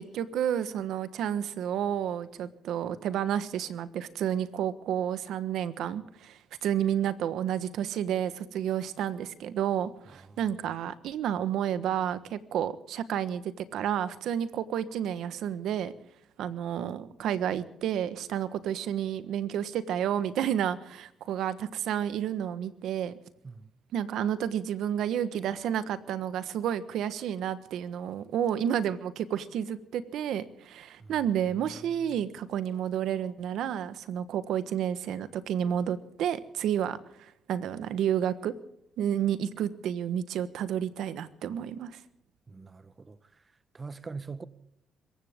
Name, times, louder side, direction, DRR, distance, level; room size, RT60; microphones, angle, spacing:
voice 1, 0.0-15.9 16.4-23.1 23.9-38.5 39.0-42.0, right 9 dB, 80° right, 1.3 m, -31 dB
voice 2, 10.0-10.4 23.4-23.7 31.0-31.2 31.6-32.2 42.5-43.4 43.7-44.4, right 4 dB, 30° right, 1.2 m, -44 dB
25.5 x 15.5 x 3.7 m
cardioid pair, 90°, 0 cm